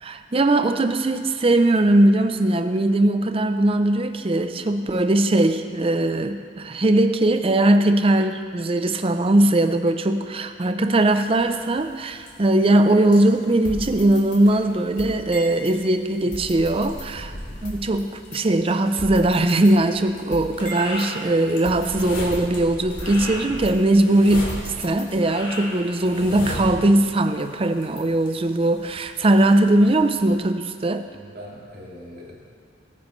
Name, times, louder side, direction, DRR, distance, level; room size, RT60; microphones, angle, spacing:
voice 1, 0.0-17.3 17.6-31.1, right 1 dB, 30° right, 9 dB, 0.5 m, -20 dB
sound 1, 11.1-30.4, left 1 dB, 75° left, 2.8 m, -39 dB
sound 2, 13.6-15.8 16.3-17.9 18.3-18.4 19.0-21.1 21.6-23.9 24.3-25.4, equal, 45° left, 2.4 m, -36 dB
voice 2, 31.1-32.5, equal, 50° right, -4 dB, 2.4 m, -42 dB
19.0 x 9.5 x 3.2 m, 2.1 s
head